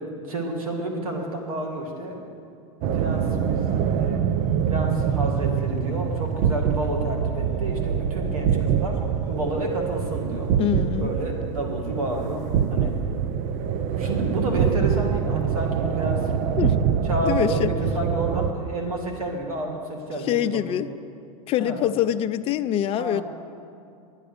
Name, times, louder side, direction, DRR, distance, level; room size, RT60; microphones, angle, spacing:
voice 1, 0.3-2.2 2.9-4.3 4.7-9.0 9.3-10.5 11.0-12.4 12.7-12.9 14.0-16.3 17.0-20.8 21.6-21.8 23.0-23.2, right 1 dB, 85° right, 2 dB, 2.0 m, -30 dB
sound 1, 2.8-18.5, right 7 dB, 50° right, 0.6 m, -25 dB
voice 2, 10.6-11.1 16.6-16.8 17.2-17.7 20.2-20.9 21.5-23.2, left 11 dB, 35° left, 11 dB, 0.4 m, -24 dB
11.0 x 9.0 x 6.7 m, 2.4 s
hypercardioid pair, 100°, 18 cm